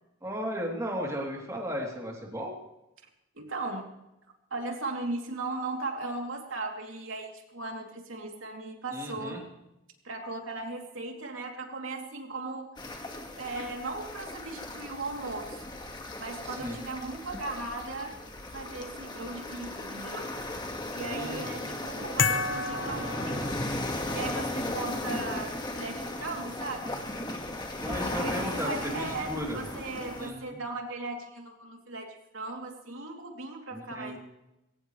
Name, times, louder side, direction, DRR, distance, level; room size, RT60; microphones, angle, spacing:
voice 1, 0.2-2.5 8.9-9.4 16.4-16.8 21.1-21.7 27.8-29.6 30.2-30.6 33.7-34.2, equal, 15° right, -2 dB, 3.2 m, -35 dB
voice 2, 3.3-3.9 4.5-9.5 10.0-12.8 13.4-15.6 16.2-18.1 18.5-20.3 20.9-23.5 24.1-27.0 28.1-34.2, right 2 dB, 70° right, 1 dB, 3.1 m, -37 dB
sound 1, 12.8-30.3, left 1 dB, 20° left, 1.8 m, -36 dB
sound 2, 22.2-24.1, left 5 dB, 65° left, 1.0 m, -30 dB
21.5 x 18.0 x 3.3 m, 0.93 s
head